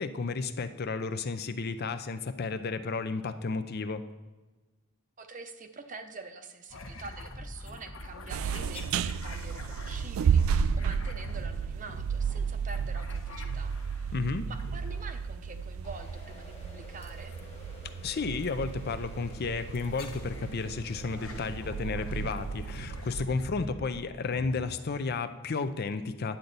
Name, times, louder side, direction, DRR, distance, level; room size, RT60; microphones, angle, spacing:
voice 1, 0.0-4.1 14.1-14.5 18.0-26.4, left 4 dB, 50° left, 10 dB, 0.5 m, -32 dB
voice 2, 5.2-14.1 14.5-17.4, right 3 dB, 40° right, 7 dB, 0.7 m, -46 dB
sound 1, 6.7-14.1 14.5-15.3 17.0-17.4 18.4-18.6 19.7-20.5 21.0-25.3, left 1 dB, 75° left, 1.1 m, -44 dB
sound 2, 8.3-23.3, right 7 dB, 85° right, 0.3 m, -33 dB
sound 3, 15.8-21.5, left 3 dB, 30° left, 1.4 m, -52 dB
10.5 x 7.8 x 4.0 m, 1.2 s
head